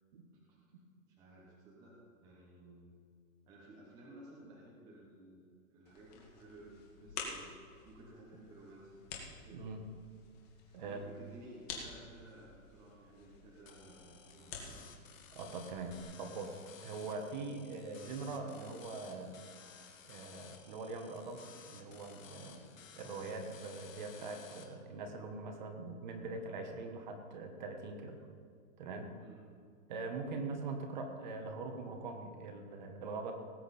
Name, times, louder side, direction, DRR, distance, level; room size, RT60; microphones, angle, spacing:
voice 1, 1.1-2.9 3.5-7.5 7.8-9.0 9.4-9.7 10.8-14.8 29.2-29.4, right 1 dB, 10° right, -4 dB, 0.9 m, -56 dB
sound 1, 5.9-16.0, left 5 dB, 30° left, 1.9 m, -50 dB
sound 2, 13.7-24.7, left 7 dB, 65° left, 1.8 m, -56 dB
voice 2, 15.3-19.4 20.0-21.4 21.7-28.2 28.8-29.1 29.9-33.3, right 3 dB, 30° right, 5 dB, 1.2 m, -42 dB
18.5 x 8.5 x 4.2 m, 2.2 s
hypercardioid pair, 170°, 42 cm